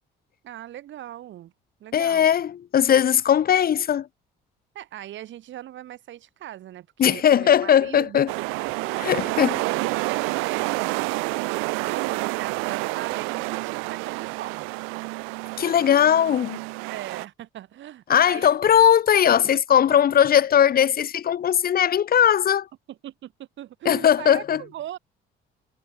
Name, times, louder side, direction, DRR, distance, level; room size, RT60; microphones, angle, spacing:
voice 1, 0.4-1.5 1.8-2.3 4.7-14.7 16.9-18.8 22.9-25.0, right 12 dB, 65° right, 2.0 m, -39 dB
voice 2, 1.9-4.1 7.0-8.3 9.0-9.5 15.6-16.6 18.1-22.7 23.9-24.6, left 9 dB, 45° left, 0.9 m, -19 dB
sound 1, 8.3-17.2, right 28 dB, 90° right, 0.7 m, -29 dB
supercardioid pair, 80°, 21 cm